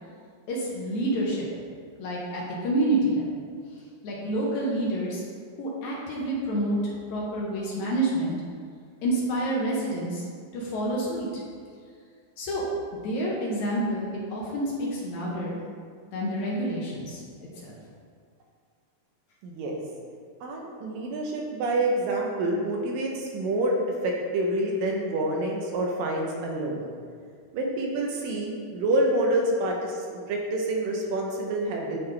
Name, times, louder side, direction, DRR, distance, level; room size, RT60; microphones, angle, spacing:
voice 1, 0.5-1.5 2.0-3.4 4.0-5.2 5.6-6.8 7.1-8.4 9.0-10.3 10.5-11.4 12.4-12.6 13.0-15.6 16.1-17.8, right 1 dB, 70° left, -4 dB, 1.8 m, -28 dB
voice 2, 19.4-19.8 20.4-23.7 24.0-26.9 27.5-32.0, right 1 dB, 75° right, 0 dB, 2.2 m, -27 dB
10.5 x 3.7 x 3.2 m, 2.1 s
omnidirectional pair, 4.4 m